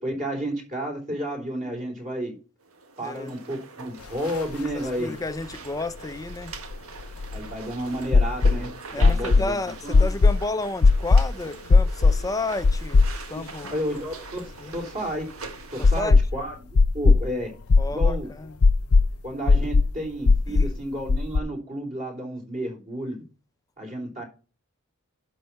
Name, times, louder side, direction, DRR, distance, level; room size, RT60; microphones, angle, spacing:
voice 1, 0.0-2.4 3.0-5.1 7.3-9.6 9.8-10.1 13.7-16.6 16.9-17.5 17.9-18.3 19.2-23.2 23.8-24.2, equal, 35° right, 3.5 m, -31 dB
sound 1, 2.6-16.0, right 4 dB, 70° right, 1.6 m, -43 dB
voice 2, 3.0-3.4 4.7-6.6 8.9-13.7 14.6-14.8 15.8-16.2 17.8-18.6 20.5-20.7, left 2 dB, 15° left, 0.6 m, -32 dB
sound 2, 4.3-4.4 4.6-4.7 6.3-7.5 8.1-8.6 9.0-9.5 9.9-10.4 10.8-11.3 11.7-12.2 12.6-13.4 13.7-13.8 15.8-16.4 16.7-17.2 17.7-18.2 18.6-19.1 19.5-19.9 20.2-20.7 21.1-21.4, left 3 dB, 80° left, 0.6 m, -17 dB
11.5 x 4.1 x 5.8 m
head